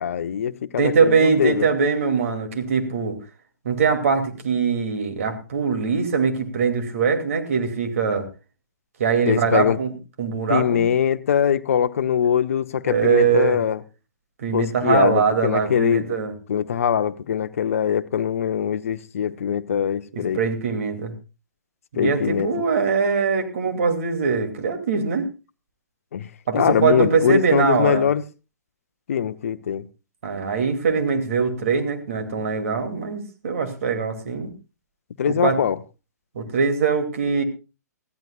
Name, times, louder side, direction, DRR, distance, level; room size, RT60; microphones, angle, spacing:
voice 1, 0.0-1.7 9.3-9.8 10.5-13.8 14.5-16.1 16.5-20.4 22.0-22.5 26.1-26.3 26.5-28.2 29.1-29.9 35.2-35.8, left 8 dB, 50° left, 0.8 m, -22 dB
voice 2, 0.8-3.2 3.6-8.3 9.0-9.9 10.2-10.8 12.8-13.6 14.4-16.3 20.1-21.1 21.9-25.3 26.5-28.0 30.2-34.5 35.3-35.6 36.3-37.4, right 5 dB, 50° right, 2.7 m, -22 dB
21.0 x 14.5 x 2.4 m
figure-of-eight pair, 120°, 9 cm